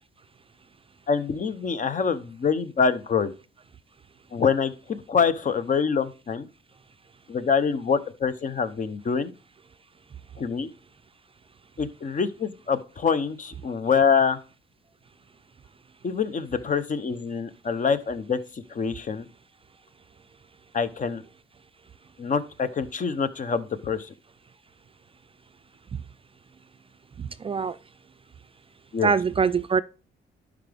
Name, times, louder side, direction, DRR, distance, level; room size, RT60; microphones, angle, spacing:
voice 1, 1.1-3.3 4.3-6.5 7.3-9.3 10.4-10.7 11.8-14.4 16.0-19.3 20.7-21.2 22.2-24.1 28.9-29.1, left 6 dB, 40° left, 0.8 m, -25 dB
voice 2, 27.2-27.8 29.0-29.8, right 5 dB, 30° right, 0.4 m, -23 dB
11.5 x 4.9 x 3.4 m
cardioid pair, 90°, 20 cm